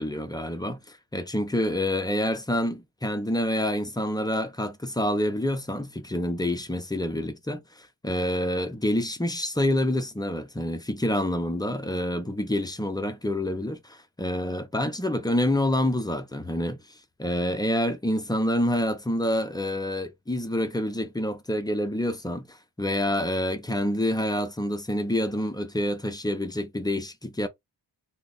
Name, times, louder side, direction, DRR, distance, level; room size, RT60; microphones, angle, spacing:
voice 1, 0.0-27.5, left 1 dB, 10° left, 0.5 m, -27 dB
2.8 x 2.1 x 3.8 m
wide cardioid pair, 110°, 44 cm